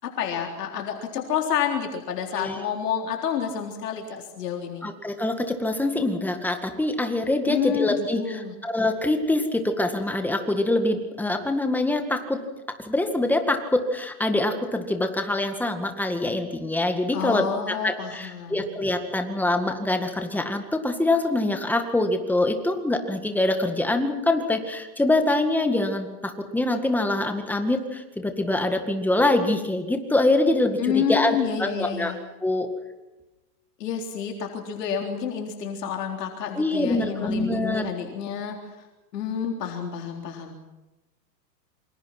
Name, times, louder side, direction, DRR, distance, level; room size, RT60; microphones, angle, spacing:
voice 1, 0.0-4.9 7.5-8.5 17.1-18.7 30.8-32.2 33.8-38.7 39.1-40.6, left 8 dB, 70° left, 2 dB, 3.9 m, -29 dB
voice 2, 4.8-12.4 12.8-32.1 32.4-32.7 36.6-37.8, left 2 dB, 5° left, 6 dB, 1.9 m, -24 dB
28.0 x 25.5 x 6.0 m, 1.1 s
hypercardioid pair, 145°, 50 cm